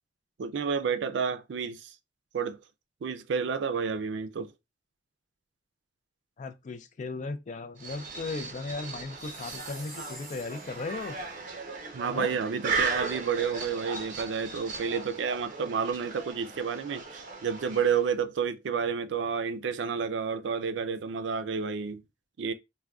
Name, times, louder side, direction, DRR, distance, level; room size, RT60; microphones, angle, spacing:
voice 1, 0.4-1.9 2.3-2.6 3.0-4.5 11.9-22.0 22.4-22.5, right 6 dB, 85° right, 0.4 m, -30 dB
voice 2, 6.4-11.2 12.1-12.4, left 3 dB, 45° left, 0.4 m, -37 dB
sound 1, 7.8-18.2, right 4 dB, 45° right, 0.7 m, -37 dB
Chime, 9.2-11.2, right 1 dB, ahead, 1.1 m, -48 dB
3.5 x 2.1 x 2.3 m
head